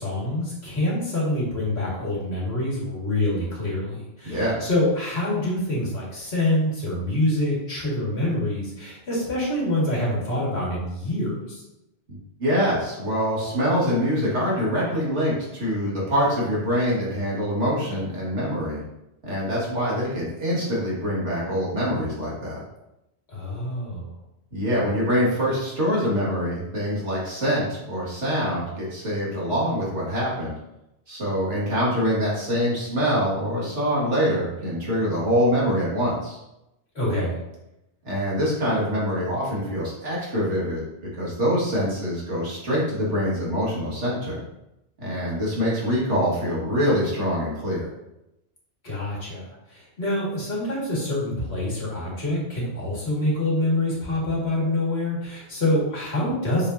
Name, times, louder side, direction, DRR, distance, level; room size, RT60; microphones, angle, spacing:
voice 1, 0.0-11.6 23.3-24.1 36.9-37.4 48.8-56.7, left 1 dB, 60° left, -5 dB, 2.3 m, -26 dB
voice 2, 4.2-4.6 12.4-18.8 19.3-22.6 24.5-30.5 31.1-36.4 38.0-40.8 41.2-44.4 45.0-47.9, equal, 80° right, -6 dB, 2.3 m, -24 dB
6.6 x 5.3 x 2.7 m, 0.91 s
omnidirectional pair, 1.2 m